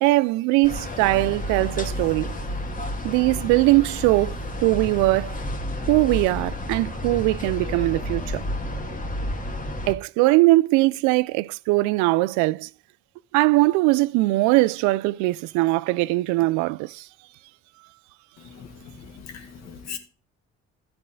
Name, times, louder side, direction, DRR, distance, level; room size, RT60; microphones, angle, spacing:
voice 1, 0.0-2.4 3.0-4.4 4.6-5.3 5.9-8.4 9.9-12.7 13.3-17.0, right 20 dB, 80° right, 0.5 m, -21 dB
sound 1, 0.6-9.9, left 1 dB, 30° left, 2.2 m, -31 dB
voice 2, 19.0-20.0, left 7 dB, 65° left, 2.5 m, -39 dB
13.0 x 7.8 x 3.8 m
supercardioid pair, 60°, 29 cm